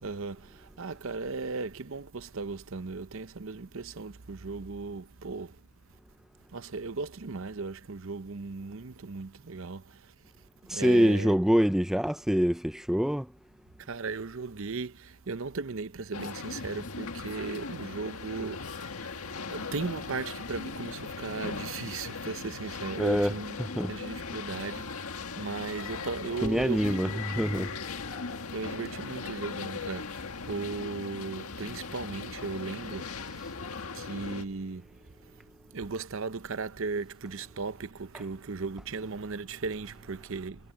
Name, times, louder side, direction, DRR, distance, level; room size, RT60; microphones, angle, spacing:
voice 1, 0.0-5.6 6.5-10.1 10.6-11.4 13.8-23.6 23.9-27.8 28.5-35.5 35.7-40.7, right 4 dB, 60° right, 0.8 m, -37 dB
voice 2, 10.7-13.3 23.0-23.3 23.8-23.9 26.4-27.7, equal, ahead, 0.4 m, -25 dB
sound 1, 16.1-34.5, left 4 dB, 75° left, 1.7 m, -39 dB
head